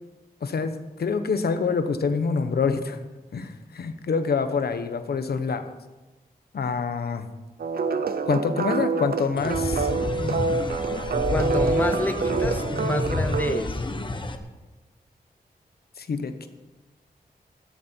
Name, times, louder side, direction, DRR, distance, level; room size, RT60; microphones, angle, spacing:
voice 1, 0.4-0.7 1.0-3.0 3.3-5.7 6.5-7.3 8.3-9.9 16.0-16.5, left 5 dB, 80° left, 9 dB, 1.1 m, -26 dB
sound 1, 7.6-13.6, right 4 dB, 70° right, 0.8 m, -26 dB
sound 2, 9.4-14.4, left 2 dB, 30° left, 1.1 m, -30 dB
voice 2, 11.3-13.8, left 2 dB, 10° left, 10 dB, 0.6 m, -28 dB
15.0 x 13.0 x 4.5 m, 1.1 s
wide cardioid pair, 110°, 16 cm